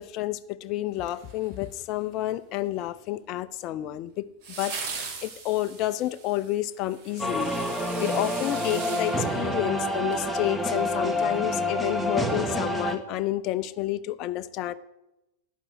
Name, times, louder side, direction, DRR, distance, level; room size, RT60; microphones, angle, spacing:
voice 1, 0.0-4.3 4.6-7.5 8.0-14.7, left 15 dB, 40° left, 12 dB, 0.6 m, -30 dB
sound 1, 1.0-1.9 4.4-10.2 10.6-10.7, right 5 dB, 45° right, 2.8 m, -40 dB
sound 2, 7.2-13.0, equal, 5° right, 1.6 m, -28 dB
11.5 x 9.3 x 7.9 m, 0.93 s
figure-of-eight pair, 90°, 0 cm